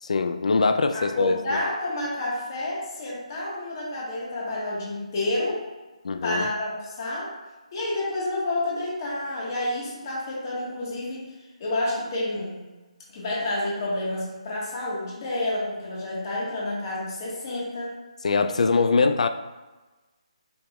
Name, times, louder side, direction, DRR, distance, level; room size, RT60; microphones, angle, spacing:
voice 1, 0.0-1.6 6.0-6.5 18.2-19.3, left 4 dB, 70° left, 8 dB, 0.3 m, -23 dB
voice 2, 0.9-5.6 6.2-7.3 7.7-11.3 11.6-12.6 13.1-18.0, left 1 dB, 35° left, -5 dB, 1.4 m, -29 dB
5.2 x 3.9 x 2.3 m, 1.2 s
hypercardioid pair, 160°, 4 cm